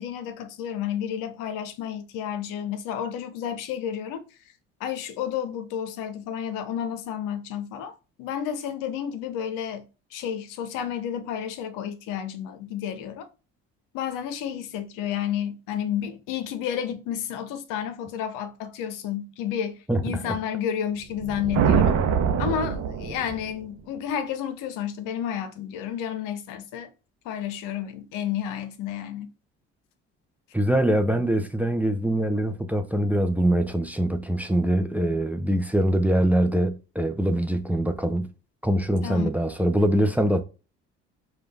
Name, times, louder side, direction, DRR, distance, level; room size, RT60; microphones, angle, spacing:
voice 1, 0.0-4.2 4.8-13.3 13.9-21.9 22.4-26.9 27.2-29.3 39.0-39.3, left 9 dB, 75° left, 0.7 m, -31 dB
voice 2, 19.9-20.4 30.5-38.3 38.6-40.4, right 1 dB, 5° right, 0.6 m, -23 dB
sound 1, 21.1-23.6, right 7 dB, 60° right, 0.7 m, -24 dB
5.0 x 2.4 x 3.3 m
hypercardioid pair, 65°, 32 cm